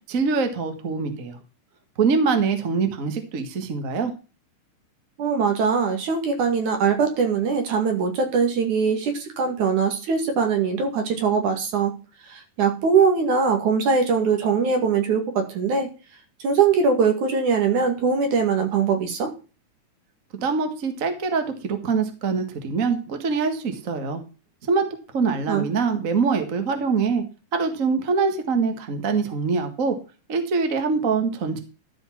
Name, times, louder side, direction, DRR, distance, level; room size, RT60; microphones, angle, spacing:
voice 1, 0.1-1.4 2.0-4.1 20.3-24.2 24.7-24.8 25.1-27.2 27.5-30.0 30.3-31.6, right 5 dB, 35° right, 6 dB, 1.3 m, -24 dB
voice 2, 5.2-11.9 12.3-15.9 16.4-19.3 25.5-25.7, right 5 dB, 65° right, 5 dB, 3.4 m, -21 dB
12.5 x 5.3 x 5.9 m, 0.33 s
omnidirectional pair, 3.8 m